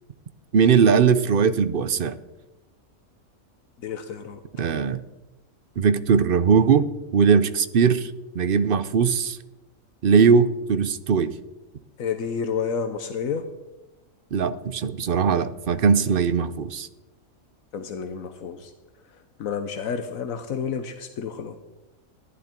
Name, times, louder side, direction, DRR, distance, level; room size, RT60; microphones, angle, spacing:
voice 1, 0.5-2.2 4.6-5.0 5.8-6.9 7.1-9.4 10.0-11.3 14.3-16.9, right 6 dB, 50° right, 13 dB, 0.7 m, -20 dB
voice 2, 3.8-4.4 12.0-13.4 17.7-18.7 19.1-21.6, left 6 dB, 80° left, 8 dB, 1.3 m, -30 dB
14.5 x 11.5 x 4.4 m, 0.99 s
omnidirectional pair, 1.4 m